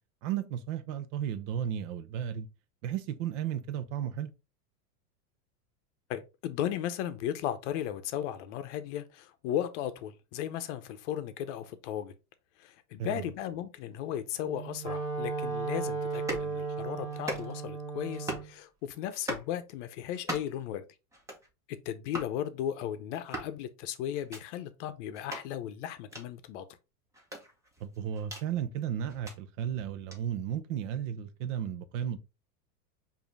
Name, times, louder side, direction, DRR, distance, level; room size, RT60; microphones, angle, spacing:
voice 1, 0.2-2.5 2.8-4.3 13.0-13.3 27.8-32.2, right 9 dB, 55° right, 0.7 m, -34 dB
voice 2, 6.1-12.1 12.6-20.9 21.7-26.6, left 10 dB, 50° left, 0.7 m, -36 dB
Wind instrument woodwind instrument, 14.4-18.5, right 4 dB, 30° right, 1.9 m, -35 dB
sound 1, 16.1-16.5 17.1-17.7 18.1-18.5 19.1-19.5 20.1-20.6 21.1-21.5 22.1-22.3 23.1-23.5 24.1-24.4 25.1-25.4 26.1-26.2 27.1-28.5 29.1-29.4 30.1-30.2, right 1 dB, 5° right, 0.7 m, -39 dB
5.0 x 2.7 x 3.2 m
supercardioid pair, 145°, 46 cm